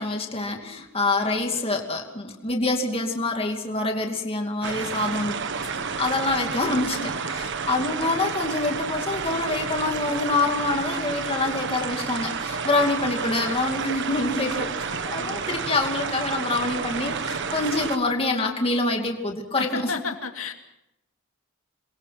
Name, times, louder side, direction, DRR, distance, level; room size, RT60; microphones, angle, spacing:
voice 1, 0.0-5.4 5.7-19.9, left 2 dB, 30° left, 2 dB, 2.6 m, -26 dB
voice 2, 1.2-1.6 15.1-15.5 19.5-20.5, left 4 dB, 85° left, 5 dB, 2.4 m, -33 dB
sound 1, 4.6-18.0, right 5 dB, 60° right, 1.3 m, -30 dB
28.0 x 22.0 x 6.0 m, 0.87 s
head